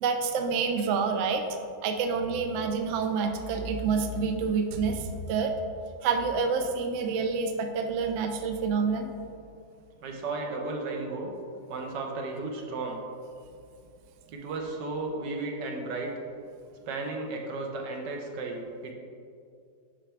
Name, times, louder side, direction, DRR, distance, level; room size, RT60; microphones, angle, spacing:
voice 1, 0.0-1.4 1.8-5.6 6.0-9.1, right 5 dB, 70° right, 5 dB, 0.7 m, -28 dB
voice 2, 10.0-11.3 11.7-13.0 14.3-16.1 16.9-18.9, right 3 dB, 85° right, 1 dB, 1.5 m, -34 dB
7.3 x 5.7 x 3.4 m, 2.4 s
omnidirectional pair, 1.8 m